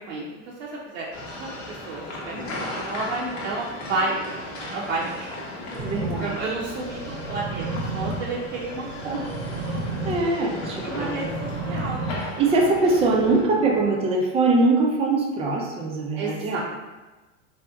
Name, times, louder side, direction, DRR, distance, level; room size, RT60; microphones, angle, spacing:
voice 1, 0.1-1.0 1.4-1.5 1.9-2.4 2.7-4.2 4.5-5.3 6.2-9.3 10.8-12.1 16.2-16.6, right 3 dB, 85° right, -4 dB, 0.6 m, -31 dB
sound 1, 1.1-13.4, left 1 dB, 45° left, 0.8 m, -36 dB
voice 2, 5.8-6.4 10.0-11.3 12.1-16.6, right 3 dB, 15° right, -1 dB, 0.4 m, -22 dB
sound 2, 5.8-13.8, right 2 dB, 45° right, 0.7 m, -33 dB
3.4 x 2.8 x 2.2 m, 1.2 s
hypercardioid pair, 110°, 38 cm